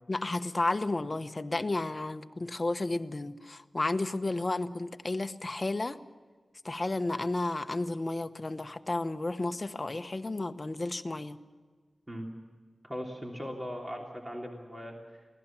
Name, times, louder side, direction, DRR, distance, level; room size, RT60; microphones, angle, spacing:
voice 1, 0.1-6.0 6.6-11.4, left 2 dB, 35° left, 9 dB, 1.0 m, -32 dB
voice 2, 12.8-15.0, equal, 20° right, 0 dB, 3.2 m, -39 dB
25.0 x 17.5 x 7.4 m, 1.5 s
wide cardioid pair, 100°, 0 cm